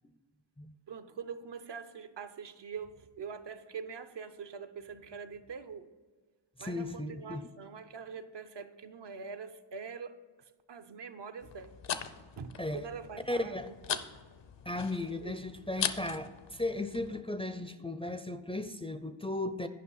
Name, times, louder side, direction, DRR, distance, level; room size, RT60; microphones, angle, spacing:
voice 1, 0.9-5.9 6.6-11.8 12.4-14.0 15.2-15.4, right 6 dB, 60° right, 0.7 m, -44 dB
voice 2, 6.6-7.4 12.6-12.9 13.3-13.7 14.7-19.7, left 2 dB, 15° left, 0.4 m, -36 dB
sound 1, 11.4-17.2, left 7 dB, 65° left, 0.7 m, -40 dB
10.5 x 5.5 x 5.5 m
cardioid pair, 60°, 47 cm